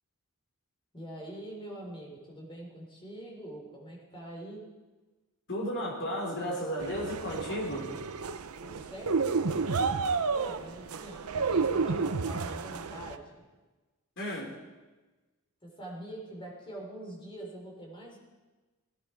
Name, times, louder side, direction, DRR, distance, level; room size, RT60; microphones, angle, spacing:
voice 1, 0.9-4.7 8.6-9.8 10.3-13.5 15.6-18.2, right 1 dB, 25° left, -1 dB, 3.9 m, -44 dB
voice 2, 5.5-7.9 14.2-14.5, equal, 55° left, -1 dB, 4.0 m, -33 dB
sound 1, 6.8-13.2, right 4 dB, 80° right, 0.7 m, -31 dB
18.0 x 16.0 x 4.5 m, 1.2 s
head